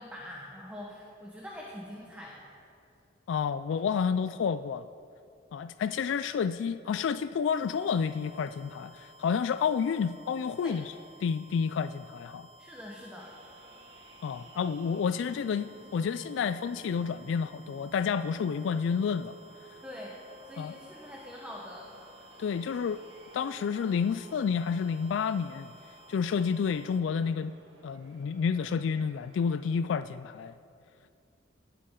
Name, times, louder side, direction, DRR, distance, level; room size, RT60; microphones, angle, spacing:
voice 1, 0.0-2.5 10.6-10.8 12.6-13.4 19.8-20.2 20.4-21.9, left 1 dB, 10° right, -3 dB, 1.2 m, -44 dB
voice 2, 3.3-4.9 5.5-10.9 11.2-12.5 14.2-19.3 20.6-20.7 22.4-23.0 23.3-25.7 26.1-27.5 27.8-30.5, left 6 dB, 70° left, 12 dB, 0.3 m, -30 dB
sound 1, 7.5-27.0, right 1 dB, 25° right, 0.7 m, -56 dB
sound 2, 13.2-29.7, right 1 dB, 90° right, 1.7 m, -56 dB
19.0 x 8.3 x 3.8 m, 2.5 s
head